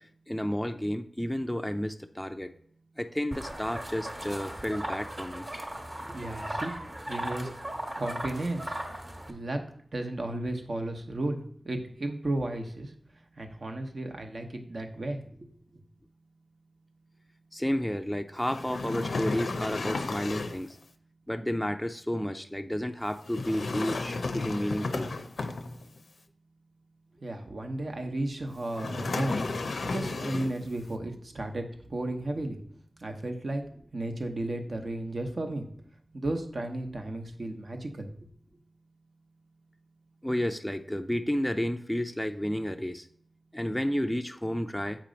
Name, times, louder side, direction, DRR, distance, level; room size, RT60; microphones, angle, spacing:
voice 1, 0.3-2.5 3.0-5.4 17.5-20.7 21.3-25.1 40.2-43.0 43.5-45.0, equal, 5° left, 5 dB, 0.4 m, -31 dB
sound 1, 3.3-9.3, right 1 dB, 30° right, 1.1 m, -37 dB
voice 2, 6.1-6.7 7.1-7.5 8.0-8.7 9.3-9.6 9.9-11.4 11.6-12.9 13.4-15.2 27.2-29.4 29.8-32.6 33.0-33.6 33.9-35.7 36.1-38.1, right 1 dB, 60° right, 4 dB, 0.9 m, -34 dB
sound 2, 18.4-20.7 23.3-26.0 28.7-30.7, left 3 dB, 80° left, 0.5 m, -33 dB
7.5 x 3.0 x 5.1 m, 0.64 s
cardioid pair, 55°, 0 cm